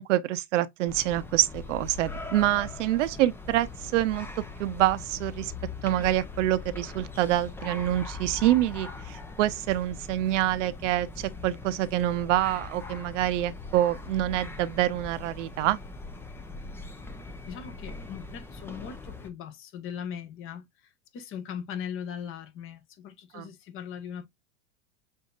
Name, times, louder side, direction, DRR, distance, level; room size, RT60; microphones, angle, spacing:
voice 1, 0.0-4.3 4.6-5.5 5.8-15.8 23.3-23.5, right 14 dB, 75° right, 0.7 m, -26 dB
sound 1, 0.9-19.3, left 3 dB, 5° left, 0.4 m, -41 dB
voice 2, 17.5-24.2, left 8 dB, 35° left, 1.1 m, -39 dB
6.6 x 2.7 x 2.3 m
supercardioid pair, 125°, 37 cm